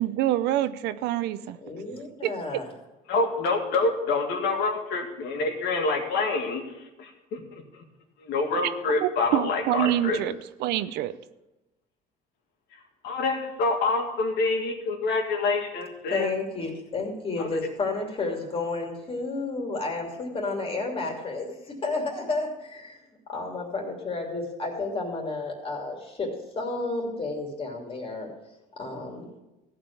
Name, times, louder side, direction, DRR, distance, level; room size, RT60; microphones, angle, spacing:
voice 1, 0.0-1.6 2.2-2.3 9.0-11.2, right 13 dB, 85° right, 14 dB, 0.6 m, -26 dB
voice 2, 1.6-2.7 16.1-23.0 23.3-28.3 28.8-29.3, left 3 dB, 35° left, 1 dB, 2.8 m, -31 dB
voice 3, 3.1-6.6 7.0-7.4 8.2-10.2 12.7-16.3 17.4-17.6, left 3 dB, 80° left, 2 dB, 2.1 m, -27 dB
14.5 x 5.1 x 7.0 m, 1.0 s
cardioid pair, 110°, 17 cm